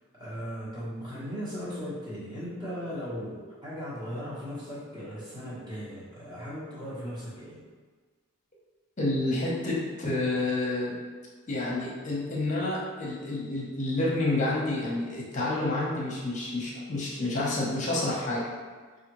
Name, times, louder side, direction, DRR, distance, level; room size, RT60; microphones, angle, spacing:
voice 1, 0.1-7.6, equal, 20° right, -9 dB, 1.1 m, -37 dB
voice 2, 9.0-11.0 11.5-18.5, left 2 dB, 35° left, -4 dB, 0.9 m, -29 dB
4.9 x 2.5 x 3.0 m, 1.5 s
head